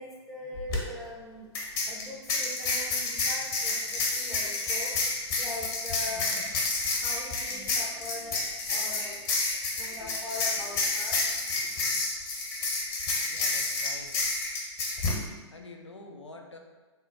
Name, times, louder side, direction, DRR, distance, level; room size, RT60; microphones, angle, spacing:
voice 1, 0.0-1.5 1.8-12.0, left 2 dB, ahead, -7 dB, 0.5 m, -42 dB
sound 1, 0.6-0.8 1.5-15.2, left 3 dB, 45° left, 1.0 m, -29 dB
voice 2, 6.1-6.5 13.3-14.2 15.5-16.6, left 3 dB, 75° left, 3 dB, 0.5 m, -47 dB
3.7 x 2.2 x 4.1 m, 1.3 s
figure-of-eight pair, 115°, 15 cm